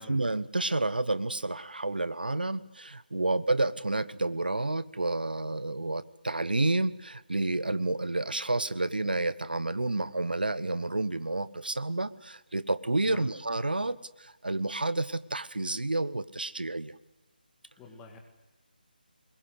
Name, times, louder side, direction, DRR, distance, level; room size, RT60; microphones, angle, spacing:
voice 1, 0.0-17.0, right 2 dB, 70° right, 16 dB, 1.2 m, -30 dB
voice 2, 17.8-18.2, left 4 dB, 10° left, 4 dB, 2.5 m, -48 dB
24.0 x 22.0 x 8.2 m, 0.98 s
figure-of-eight pair, 150°, 5 cm